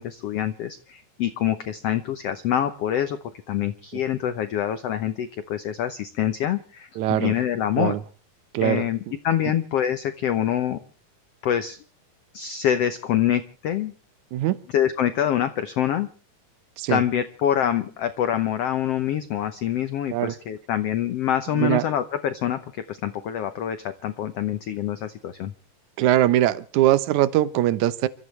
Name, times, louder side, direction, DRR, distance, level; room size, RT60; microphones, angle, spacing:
voice 1, 0.0-3.2 3.5-8.0 8.6-10.8 11.4-11.8 12.3-13.9 14.7-16.1 16.9-25.5, left 10 dB, 80° left, 10 dB, 1.4 m, -25 dB
voice 2, 7.0-7.3 7.8-8.0 8.5-8.8 14.3-14.6 16.8-17.0 20.1-20.3 21.5-21.8 26.0-28.1, right 13 dB, 70° right, 15 dB, 2.0 m, -21 dB
29.5 x 14.0 x 3.3 m, 0.37 s
omnidirectional pair, 4.0 m